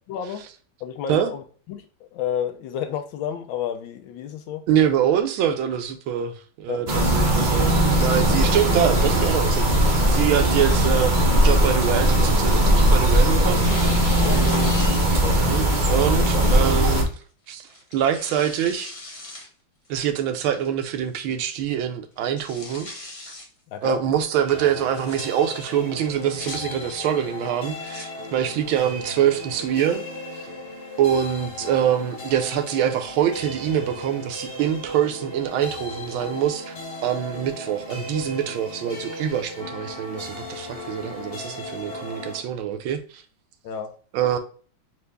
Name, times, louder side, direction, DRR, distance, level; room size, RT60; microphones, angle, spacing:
voice 1, 0.1-0.4 0.8-1.4 1.7-1.8 2.1-4.6 6.7-6.8 14.2-14.8 23.7-24.0 43.6-43.9, left 9 dB, 75° left, 1.3 m, -30 dB
voice 2, 4.7-13.7 14.2-14.8 15.3-17.1 17.5-18.9 19.9-22.9 23.8-30.0 30.3-30.5 31.0-36.7 37.0-43.2 44.1-44.4, right 9 dB, 80° right, 1.4 m, -25 dB
sound 1, 6.9-17.0, right 1 dB, 55° right, 0.5 m, -19 dB
Tearing, 13.4-15.4 15.8-15.9 16.8-17.1 17.7-19.5 19.8-19.9 20.5-20.9 21.3-21.4 21.7-21.8 22.2-23.5 24.8-25.2 26.0-26.6 27.6-28.1, left 2 dB, 60° left, 0.3 m, -39 dB
sound 2, 24.5-42.4, left 1 dB, 40° left, 0.9 m, -36 dB
4.6 x 2.5 x 3.2 m
omnidirectional pair, 2.3 m